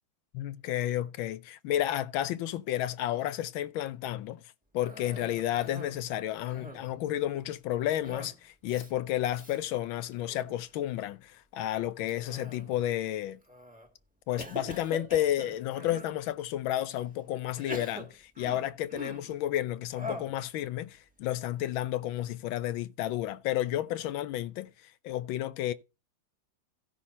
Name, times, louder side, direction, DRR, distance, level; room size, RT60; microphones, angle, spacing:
voice 1, 0.3-4.4 4.7-13.4 14.3-25.7, left 13 dB, 80° left, 1.4 m, -32 dB
Cough, 4.8-6.0 6.3-7.0 8.0-8.4 8.7-8.9 9.3-9.6 10.1-10.6 12.1-12.9 13.5-13.9 14.4-16.1 16.8-16.9 17.5-19.4 20.0-20.4, left 1 dB, 5° right, 1.4 m, -43 dB
15.5 x 5.6 x 4.3 m
omnidirectional pair, 2.2 m